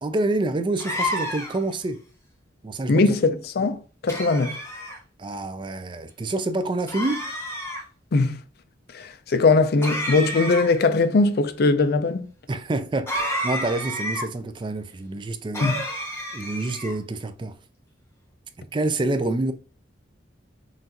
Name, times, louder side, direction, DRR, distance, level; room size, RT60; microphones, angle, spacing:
voice 1, 0.0-2.0 2.6-3.1 5.2-7.3 12.5-13.2 13.4-15.7 16.3-17.6 18.6-19.5, right 2 dB, 25° right, 0.3 m, -27 dB
sound 1, 0.8-1.7 4.1-5.0 6.9-7.8 9.8-10.9 13.1-14.3 15.5-17.0, equal, 15° left, 0.9 m, -30 dB
voice 2, 2.9-4.6 8.1-8.4 8.9-12.3 15.6-15.8, left 3 dB, 55° left, 0.4 m, -20 dB
5.7 x 2.5 x 2.8 m
head